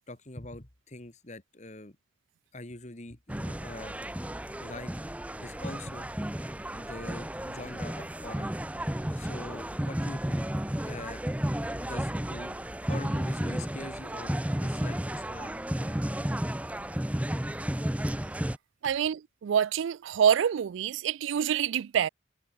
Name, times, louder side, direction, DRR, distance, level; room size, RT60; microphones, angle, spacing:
voice 1, 0.1-2.0 2.5-4.0 4.6-4.9 5.4-6.2 6.7-8.5 9.1-10.5 10.8-11.3 11.7-16.2, left 2 dB, 35° left, 1.9 m, -44 dB
sound 1, 3.3-18.6, right 1 dB, 5° right, 0.7 m, -33 dB
voice 2, 18.8-22.1, right 8 dB, 80° right, 0.3 m, -26 dB
head